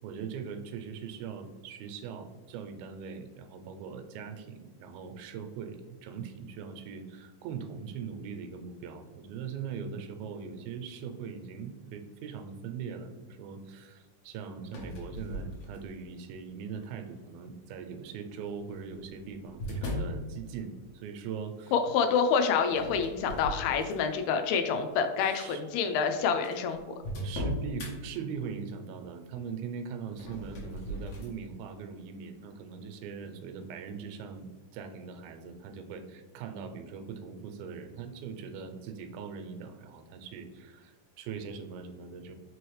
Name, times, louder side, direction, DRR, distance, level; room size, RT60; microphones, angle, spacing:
voice 1, 0.0-21.7 25.2-25.6 27.2-42.3, right 6 dB, 85° right, 7 dB, 2.3 m, -41 dB
sound 1, 14.6-16.1 16.7-17.2 18.3-20.2 22.7-24.2 24.7-24.9 25.7-25.8 26.0-26.1 26.4-27.9 30.1-31.4, equal, 65° left, 1.8 m, -38 dB
voice 2, 21.7-27.0, left 6 dB, 85° left, 6 dB, 2.3 m, -27 dB
5.4 x 3.1 x 3.1 m, 1.3 s
omnidirectional pair, 4.1 m